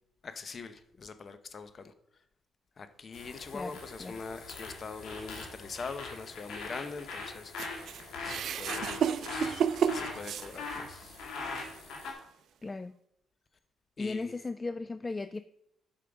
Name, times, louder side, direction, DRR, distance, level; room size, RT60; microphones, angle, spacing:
voice 1, 0.2-1.9 2.8-7.5 8.2-11.2 12.0-12.1 14.0-14.3, left 4 dB, 40° left, 10 dB, 0.8 m, -43 dB
sound 1, 3.1-12.1, left 3 dB, 80° left, 2.2 m, -41 dB
voice 2, 3.5-4.2 12.6-12.9 14.0-15.4, left 3 dB, 25° left, 13 dB, 0.3 m, -37 dB
sound 2, 7.6-11.0 11.5-11.7 12.6-12.7, right 8 dB, 70° right, 0.5 m, -32 dB
8.5 x 5.7 x 5.0 m, 0.76 s
cardioid pair, 90°, 0 cm